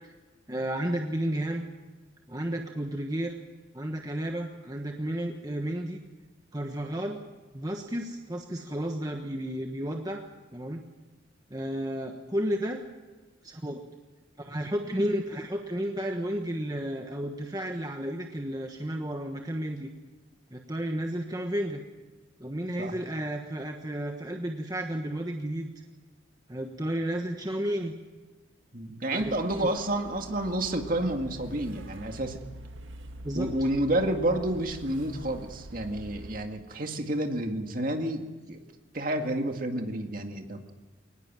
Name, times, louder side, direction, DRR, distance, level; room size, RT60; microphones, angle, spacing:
voice 1, 0.5-1.6 2.3-3.3 3.7-6.0 6.5-7.2 7.5-10.2 10.5-10.8 11.5-12.8 13.4-13.8 14.4-19.9 20.5-21.8 22.4-25.7 26.5-27.9 29.1-29.3 29.6-29.7 33.2-33.5, right 1 dB, 20° right, 3 dB, 1.3 m, -32 dB
voice 2, 28.7-32.4 33.4-38.2 38.5-38.6 38.9-40.6, right 1 dB, 45° right, 4 dB, 2.2 m, -30 dB
sound 1, 29.2-36.5, right 1 dB, 80° right, 1.7 m, -45 dB
22.5 x 19.5 x 7.6 m, 1.3 s
head